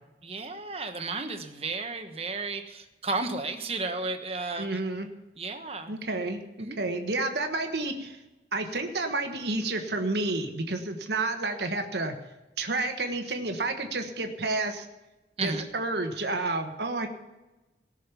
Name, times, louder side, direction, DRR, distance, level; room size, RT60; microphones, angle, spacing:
voice 1, 0.2-4.7 5.4-5.9 6.6-6.8 15.4-15.6, right 3 dB, 35° right, 6 dB, 1.1 m, -33 dB
voice 2, 4.6-5.1 5.9-8.2 8.5-12.2 12.6-14.8 15.4-17.1, right 2 dB, 70° right, 5 dB, 1.4 m, -30 dB
17.5 x 6.5 x 6.9 m, 1.1 s
head